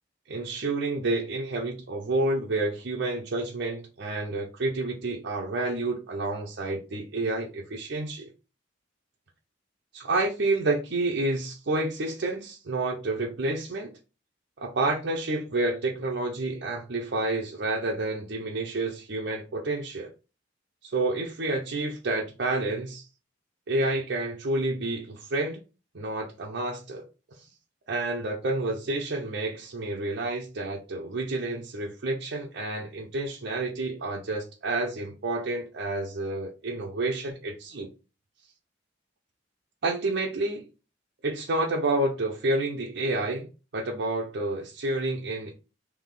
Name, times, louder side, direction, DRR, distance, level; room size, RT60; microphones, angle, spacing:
voice 1, 0.3-8.3 9.9-13.9 14.6-20.1 20.8-23.0 23.7-25.6 25.9-27.1 27.9-37.9 39.8-40.7 41.2-43.5 43.7-45.5, right 2 dB, 60° right, 0.7 m, -29 dB
3.5 x 2.7 x 3.8 m
head